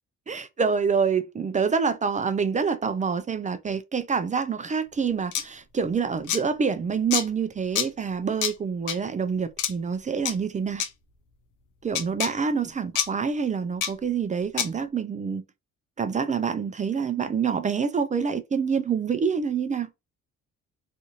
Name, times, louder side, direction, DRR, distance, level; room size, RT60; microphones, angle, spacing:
voice 1, 0.3-10.8 11.8-15.4 16.0-19.9, right 6 dB, 25° right, 0.4 m, -26 dB
sound 1, 5.3-5.4 6.3-6.4 7.1-7.2 7.8-7.9 8.4-8.5 8.9-9.0 9.6-9.7 10.3-10.4 10.8-10.9 11.9-12.3 13.0-13.1 13.8-13.9 14.6-14.7, left 9 dB, 80° left, 0.6 m, -26 dB
2.6 x 2.5 x 2.8 m
cardioid pair, 90°, 30 cm